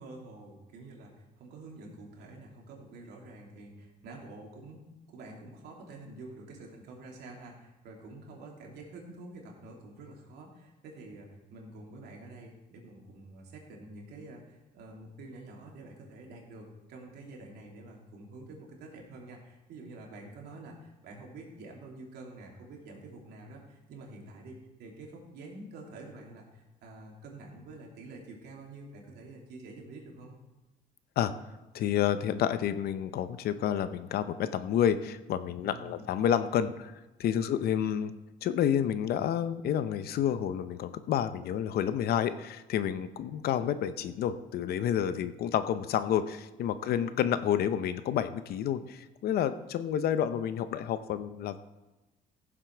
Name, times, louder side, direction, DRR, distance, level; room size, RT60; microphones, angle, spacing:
voice 1, 0.0-30.3 35.6-36.1 37.4-37.6 46.8-47.3, right 2 dB, 75° right, -1 dB, 3.0 m, -48 dB
voice 2, 31.7-36.9 37.2-38.1 38.4-51.6, left 9 dB, 65° left, 12 dB, 0.8 m, -29 dB
15.5 x 7.5 x 4.6 m, 1.1 s
cardioid pair, 110°, 17 cm